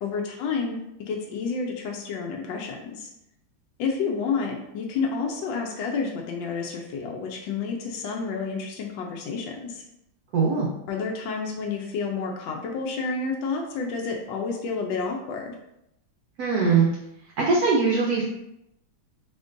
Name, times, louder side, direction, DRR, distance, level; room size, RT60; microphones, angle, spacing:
voice 1, 0.0-3.1 3.8-9.8 10.9-15.6, left 5 dB, 75° left, 0 dB, 1.3 m, -30 dB
voice 2, 10.3-10.7 16.4-16.9 17.4-18.2, right 4 dB, 70° right, -2 dB, 0.9 m, -21 dB
4.3 x 3.6 x 2.5 m, 0.83 s
omnidirectional pair, 2.2 m